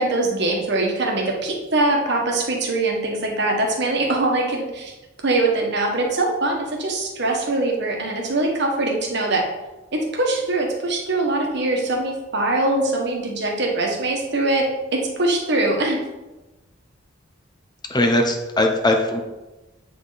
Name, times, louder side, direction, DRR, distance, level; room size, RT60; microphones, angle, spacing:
voice 1, 0.0-4.9 5.2-9.5 9.9-14.7 14.9-16.0, right 2 dB, 55° right, 0 dB, 1.4 m, -22 dB
voice 2, 17.9-19.2, left 1 dB, 20° left, 3 dB, 0.7 m, -19 dB
8.3 x 5.3 x 4.1 m, 1.1 s
head